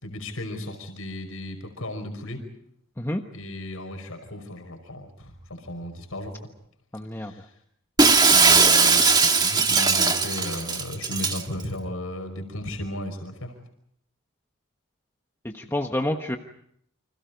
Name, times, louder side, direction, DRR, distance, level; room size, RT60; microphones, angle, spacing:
voice 1, 0.0-2.5 3.3-6.5 7.2-7.5 8.1-13.5, left 1 dB, 85° left, 4 dB, 5.3 m, -35 dB
voice 2, 6.9-7.3 15.4-16.4, left 1 dB, 10° left, 3 dB, 1.3 m, -28 dB
Shatter, 8.0-11.4, right 4 dB, 20° right, 1.7 m, -19 dB
29.5 x 26.0 x 5.3 m, 0.69 s
head